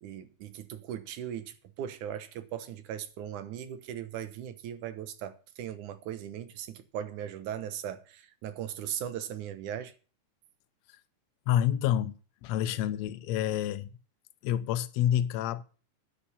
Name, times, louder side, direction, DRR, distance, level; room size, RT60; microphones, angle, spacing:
voice 1, 0.0-9.9, right 10 dB, 80° right, 2.6 m, -38 dB
voice 2, 11.5-13.9 14.4-15.6, left 11 dB, 70° left, 1.8 m, -28 dB
9.9 x 8.3 x 6.9 m
omnidirectional pair, 3.5 m